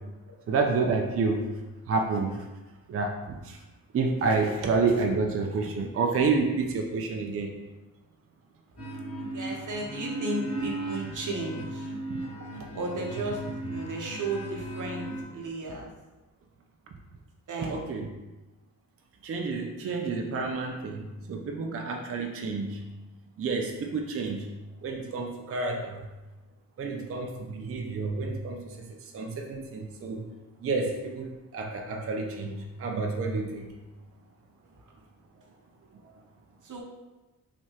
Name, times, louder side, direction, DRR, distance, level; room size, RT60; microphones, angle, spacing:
voice 1, 0.5-1.4 1.9-2.4 2.9-3.6 3.9-7.5 12.1-12.2 17.6-18.1 19.2-22.8 23.4-24.5 24.8-26.0 26.8-30.3 30.6-33.7, right 4 dB, 40° right, 2 dB, 0.4 m, -29 dB
sound 1, 8.8-15.2, right 2 dB, 40° left, 1.2 m, -36 dB
voice 2, 9.3-11.9 12.7-13.4 13.7-15.1 15.3-15.9 17.5-17.8 36.6-36.8, right 2 dB, 55° right, -1 dB, 0.8 m, -34 dB
3.3 x 2.7 x 2.8 m, 1.1 s
cardioid pair, 85°, 37 cm